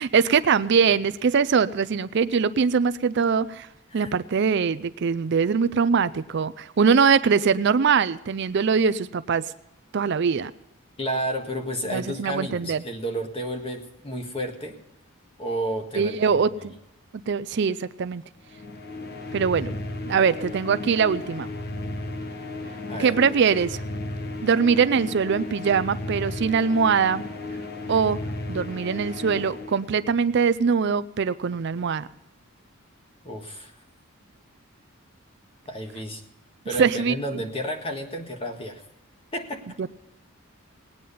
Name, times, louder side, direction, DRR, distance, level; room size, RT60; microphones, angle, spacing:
voice 1, 0.0-3.7 3.9-9.4 9.9-10.5 11.9-12.8 16.0-16.7 17.1-18.2 19.3-19.7 20.1-21.5 23.0-23.8 24.4-27.2 27.9-28.2 28.5-32.1 36.8-37.4, right 6 dB, 50° right, 15 dB, 0.4 m, -22 dB
voice 2, 11.0-14.8 15.4-16.7 22.9-23.2 33.2-33.7 35.7-36.2 36.6-38.8 39.3-39.7, right 1 dB, 25° left, 4 dB, 1.6 m, -31 dB
sound 1, 18.5-30.3, left 2 dB, 45° left, 1.1 m, -34 dB
19.0 x 9.3 x 5.5 m, 0.92 s
head